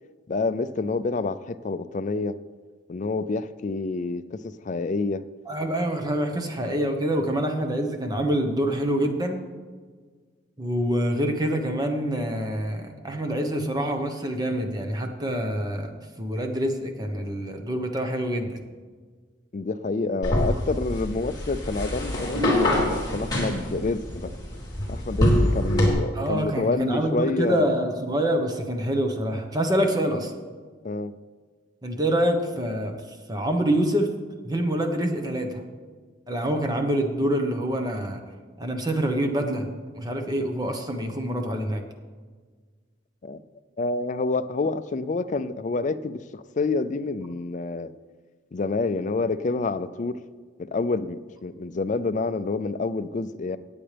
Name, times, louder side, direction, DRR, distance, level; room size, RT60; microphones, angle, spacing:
voice 1, 0.3-2.4 2.9-5.2 19.5-24.3 24.9-27.7 30.8-31.1 43.2-43.4 43.8-47.9 48.5-50.2 50.6-53.6, left 3 dB, 40° left, 13 dB, 0.4 m, -28 dB
voice 2, 5.5-9.4 10.6-15.9 16.2-18.6 26.1-30.3 31.8-34.1 34.4-35.6 36.3-38.2 38.6-39.7 39.9-41.8, right 1 dB, 20° right, 4 dB, 1.1 m, -26 dB
sound 1, 20.2-25.9, left 1 dB, 20° left, 3.2 m, -25 dB
17.5 x 8.8 x 3.4 m, 1.5 s
head